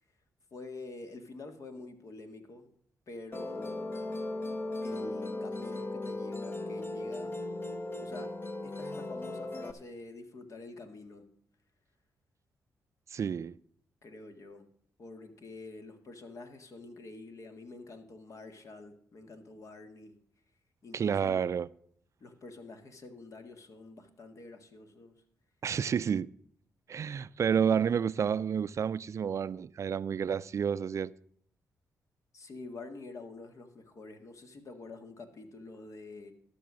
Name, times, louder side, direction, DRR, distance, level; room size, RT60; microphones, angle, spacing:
voice 1, 0.5-2.7 3.1-4.0 4.8-7.4 8.0-8.3 8.6-11.3 14.0-14.7 15.0-20.2 20.8-21.5 22.2-25.2 32.3-36.3, left 3 dB, 55° left, 1.8 m, -47 dB
Musical instrument, 3.3-9.7, left 2 dB, 35° left, 1.1 m, -37 dB
voice 2, 13.1-13.6 20.9-21.7 25.6-26.3 26.9-31.1, right 7 dB, 55° right, 0.4 m, -30 dB
12.5 x 6.8 x 6.2 m
cardioid pair, 65°, 6 cm